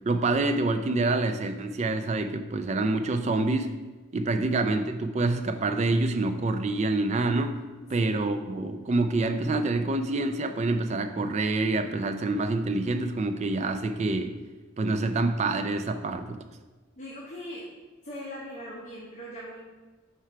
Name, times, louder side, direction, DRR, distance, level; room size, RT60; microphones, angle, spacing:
voice 1, 0.1-3.8 4.1-7.6 7.9-14.3 14.8-16.4, right 2 dB, 35° right, 8 dB, 0.3 m, -27 dB
voice 2, 17.0-17.7 18.0-19.6, equal, 35° left, -5 dB, 0.9 m, -40 dB
4.5 x 4.4 x 4.8 m, 1.3 s
head